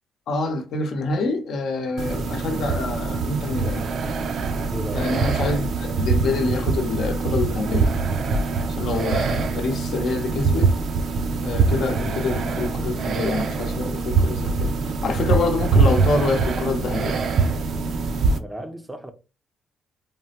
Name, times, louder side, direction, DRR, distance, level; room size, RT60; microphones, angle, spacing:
voice 1, 0.3-3.9 4.9-7.9 8.7-10.7 11.4-14.7 15.0-17.2, left 3 dB, 70° left, 0.7 m, -26 dB
sound 1, 2.0-18.4, right 4 dB, 65° right, 0.4 m, -23 dB
voice 2, 4.7-5.1 18.4-19.1, equal, 5° right, 0.5 m, -34 dB
3.3 x 2.1 x 2.8 m
cardioid pair, 90°, 0 cm